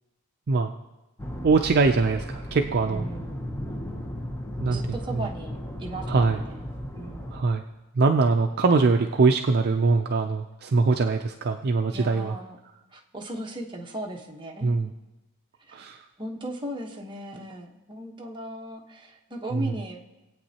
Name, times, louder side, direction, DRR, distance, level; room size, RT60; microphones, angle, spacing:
sound 1, 1.2-7.4, equal, 10° left, 0.9 m, -35 dB
voice 1, 1.4-3.1 4.6-4.8 5.1-5.3 6.1-6.4 7.3-7.6 8.0-12.3 14.6-14.9 15.7-16.0 19.5-19.7, right 4 dB, 45° right, 5 dB, 0.5 m, -22 dB
voice 2, 2.9-3.7 4.7-6.6 6.9-7.3 11.9-12.6 12.9-14.9 15.7-15.8 16.2-20.0, right 1 dB, 20° right, -1 dB, 1.1 m, -37 dB
22.5 x 8.4 x 2.9 m, 1.1 s
head